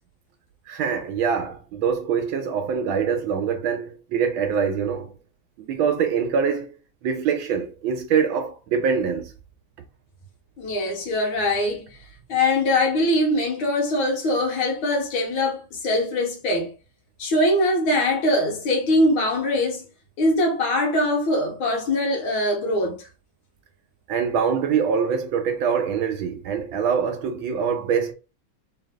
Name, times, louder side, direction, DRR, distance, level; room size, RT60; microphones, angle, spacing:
voice 1, 0.7-5.2 5.6-6.7 7.0-9.3 24.1-28.1, right 6 dB, 75° right, 1.5 m, -24 dB
voice 2, 10.6-11.9 12.3-16.7 17.2-19.8 20.2-23.0, left 1 dB, 80° left, 1.9 m, -22 dB
4.0 x 2.9 x 3.6 m
omnidirectional pair, 2.2 m